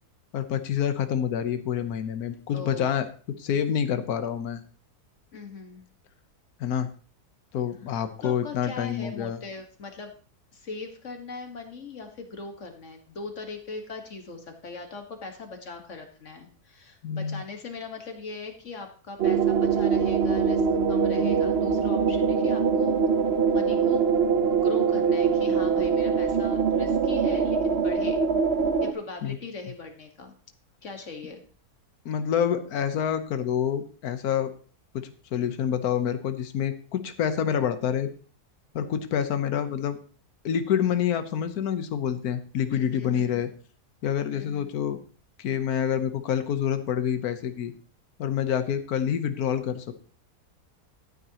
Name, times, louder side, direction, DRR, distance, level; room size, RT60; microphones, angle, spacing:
voice 1, 0.3-3.1 3.4-4.6 6.6-6.9 7.5-9.4 17.0-17.4 29.2-29.4 32.0-34.5 34.9-38.1 38.7-40.0 40.4-43.5 44.0-45.0 45.4-47.7 48.2-49.9, left 9 dB, 70° left, 9 dB, 1.4 m, -27 dB
voice 2, 2.5-2.9 5.3-5.9 8.2-10.1 10.5-23.0 23.5-24.1 24.5-28.2 28.8-30.3 30.8-31.4 42.7-43.3 44.3-44.7, left 4 dB, 50° left, 4 dB, 1.9 m, -40 dB
sound 1, 19.2-28.9, right 6 dB, 50° right, 0.9 m, -23 dB
14.0 x 9.5 x 2.9 m, 0.40 s
omnidirectional pair, 1.7 m